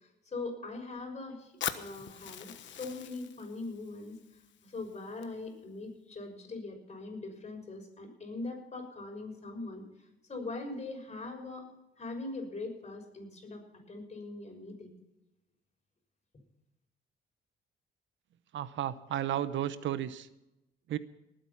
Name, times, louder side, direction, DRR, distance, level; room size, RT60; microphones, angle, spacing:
voice 1, 0.0-4.2 4.6-9.8 10.3-11.7 12.0-14.9, left 3 dB, 35° left, 2 dB, 6.2 m, -41 dB
Fire, 1.6-5.6, left 10 dB, 65° left, 1.2 m, -43 dB
voice 2, 18.5-20.3 20.9-21.0, right 11 dB, 70° right, 15 dB, 0.8 m, -33 dB
19.5 x 9.0 x 5.8 m, 0.90 s
cardioid pair, 90°, 20 cm